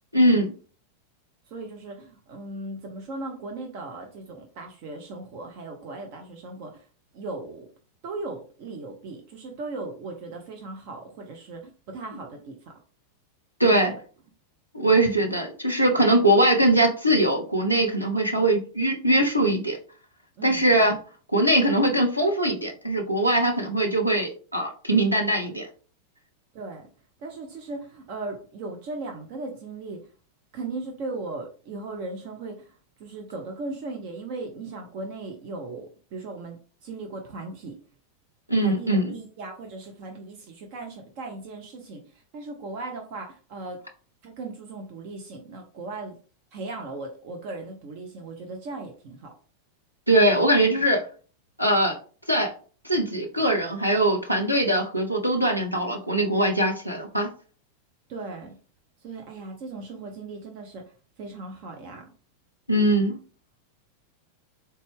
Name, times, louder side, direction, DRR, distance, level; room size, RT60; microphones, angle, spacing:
voice 1, 0.1-0.5 13.6-13.9 14.7-19.8 20.4-21.0 21.3-25.7 38.5-39.2 50.1-51.0 51.6-52.0 52.3-52.5 52.8-57.3 62.7-63.2, right 1 dB, 90° right, 1 dB, 0.7 m, -21 dB
voice 2, 1.5-6.9 7.1-7.7 8.0-12.5 13.7-13.9 20.4-20.7 26.5-26.9 27.2-30.0 30.5-32.7 33.0-37.8 38.6-43.8 44.2-46.1 46.5-49.3 58.1-58.5 59.0-60.9 61.2-62.1, right 3 dB, 45° right, 2 dB, 0.6 m, -37 dB
3.9 x 2.2 x 3.4 m, 0.39 s
figure-of-eight pair, 90°, 0 cm